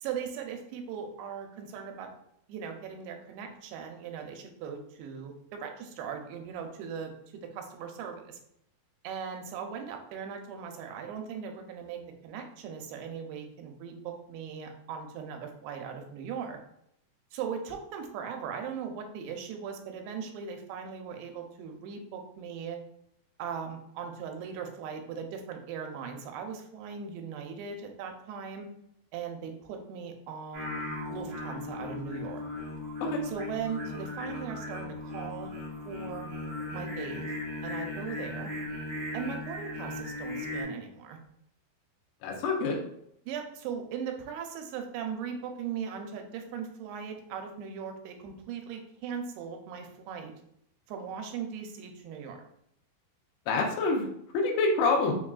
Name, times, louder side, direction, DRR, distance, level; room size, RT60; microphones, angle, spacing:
voice 1, 0.0-2.1 2.5-8.4 9.0-16.6 17.3-22.8 23.4-28.7 29.1-32.4 33.2-35.5 35.8-36.3 36.7-37.2 37.6-38.5 39.1-41.2 43.3-50.3 50.9-52.4, right 7 dB, 90° right, 4 dB, 2.5 m, -39 dB
Singing, 30.5-40.6, left 2 dB, 65° right, 1.1 m, -37 dB
voice 2, 42.2-42.8 53.5-54.1 54.3-55.2, left 3 dB, 85° left, 0 dB, 2.5 m, -26 dB
5.9 x 2.4 x 2.3 m, 0.73 s
omnidirectional pair, 4.4 m